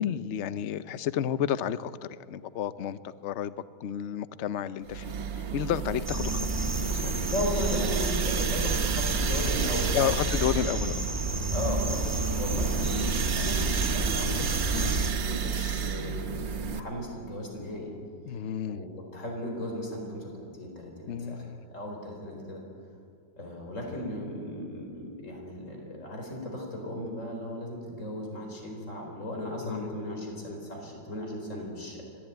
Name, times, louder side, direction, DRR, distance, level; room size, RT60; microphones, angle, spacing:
voice 1, 0.0-3.5 3.8-5.1 5.5-6.5 6.9-7.2 9.9-11.0 14.7-15.0 18.3-18.8 21.1-21.6 29.6-30.0, left 9 dB, 60° left, 15 dB, 0.7 m, -31 dB
sound 1, 4.9-16.8, right 6 dB, 85° right, 1.9 m, -30 dB
sound 2, 6.1-15.1, right 1 dB, 20° right, 0.5 m, -32 dB
voice 2, 7.2-10.1 11.5-17.9 18.7-21.4 21.7-22.6 23.4-32.0, left 1 dB, 40° left, 1 dB, 4.7 m, -36 dB
26.0 x 17.5 x 9.2 m, 2.3 s
omnidirectional pair, 2.0 m